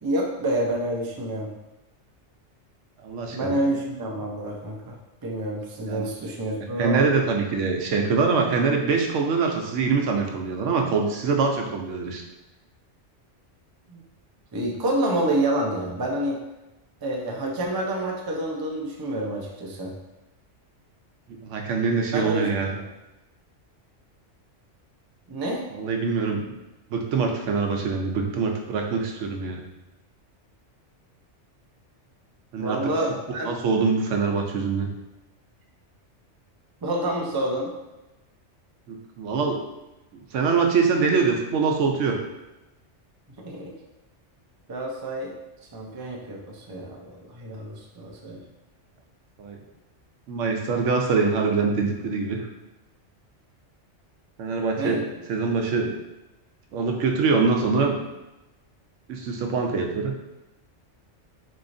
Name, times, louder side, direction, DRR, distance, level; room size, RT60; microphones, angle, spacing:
voice 1, 0.0-1.5 3.3-5.0 5.2-7.1 13.9-14.0 14.5-16.4 17.0-19.9 22.1-22.8 25.3-25.7 32.6-33.5 36.8-37.7 43.4-43.7 44.7-45.3 45.7-48.4 54.8-55.1, right 1 dB, 40° right, -1 dB, 0.3 m, -28 dB
voice 2, 3.0-3.6 5.9-6.1 6.8-12.2 21.4-22.7 25.7-26.5 26.9-29.6 32.5-32.9 33.4-34.9 38.9-39.6 40.1-42.2 49.4-49.6 50.3-52.5 54.4-55.9 56.7-58.0 59.1-60.1, right 4 dB, 90° right, 2 dB, 1.0 m, -24 dB
4.1 x 3.0 x 2.6 m, 1.0 s
omnidirectional pair, 1.2 m